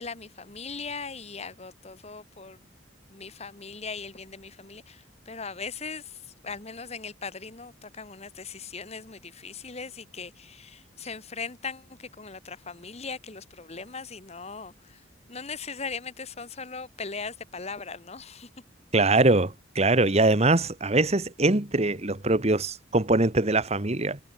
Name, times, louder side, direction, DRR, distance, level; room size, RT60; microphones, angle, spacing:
voice 1, 0.0-2.7 3.1-18.5, left 4 dB, 35° left, 1.6 m, -39 dB
voice 2, 18.9-24.2, right 2 dB, 35° right, 1.5 m, -22 dB
head